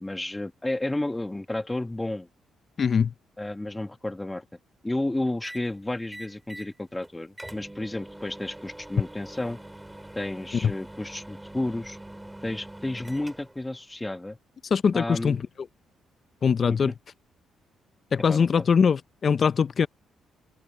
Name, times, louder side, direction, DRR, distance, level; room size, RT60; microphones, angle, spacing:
voice 1, 0.0-2.3 3.4-4.4 4.8-9.6 10.1-12.0 12.4-14.4 14.9-15.4 16.7-16.9 18.3-18.6, left 1 dB, 10° left, 1.3 m, -32 dB
voice 2, 2.8-3.1 10.6-10.7 14.7-15.4 16.4-16.9 18.1-19.9, left 6 dB, 45° left, 0.6 m, -22 dB
sound 1, 5.4-5.7 6.1-6.7 7.0-7.1 7.4-13.7, right 1 dB, 10° right, 3.6 m, -44 dB
open air
cardioid pair, 90°, 0 cm